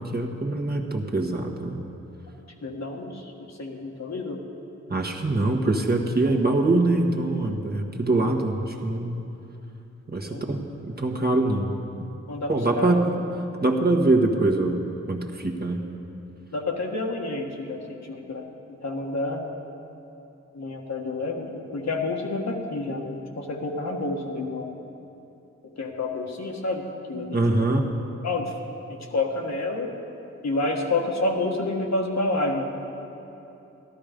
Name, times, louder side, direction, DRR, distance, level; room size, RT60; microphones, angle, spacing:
voice 1, 0.0-1.8 4.9-9.2 10.1-10.6 10.9-11.7 12.5-13.1 13.6-15.8 27.1-27.9, right 2 dB, 35° right, 1 dB, 1.4 m, -23 dB
voice 2, 2.6-4.4 10.3-10.5 12.3-12.9 16.5-18.4 18.8-19.4 20.5-24.7 25.8-27.7 28.2-28.5 28.9-29.9 30.4-32.7, left 2 dB, 65° left, 1 dB, 1.5 m, -29 dB
13.0 x 12.5 x 5.2 m, 2.9 s
cardioid pair, 55°, 29 cm